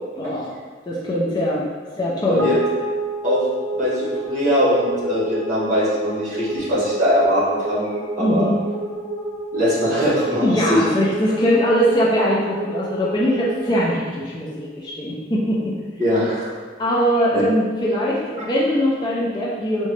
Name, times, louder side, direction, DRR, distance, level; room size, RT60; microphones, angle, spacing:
voice 1, 0.2-0.6 0.9-1.6 2.0-2.5 8.2-8.6 10.4-15.7 16.8-19.9, equal, 25° left, -5 dB, 0.4 m, -21 dB
sound 1, 2.4-14.9, right 2 dB, 70° right, 0.8 m, -30 dB
voice 2, 3.8-7.9 8.2-8.5 9.5-10.4 10.7-10.8 16.0-16.5 17.3-17.4, equal, 45° right, -9 dB, 1.2 m, -21 dB
3.7 x 2.1 x 3.1 m, 1.5 s
head